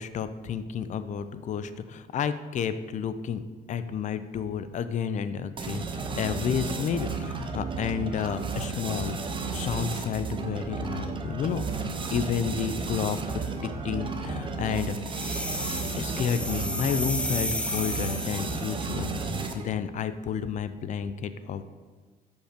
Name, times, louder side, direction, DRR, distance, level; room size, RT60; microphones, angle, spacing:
voice 1, 0.0-3.4 3.7-9.2 9.5-11.8 12.1-13.2 13.8-15.0 16.0-19.1 19.5-21.6, left 7 dB, 45° left, 12 dB, 0.5 m, -31 dB
sound 1, 5.6-19.8, right 4 dB, 30° right, 0.7 m, -33 dB
sound 2, 15.1-18.8, left 1 dB, 5° left, 0.7 m, -33 dB
6.3 x 5.2 x 5.2 m, 1.4 s
cardioid pair, 110°, 17 cm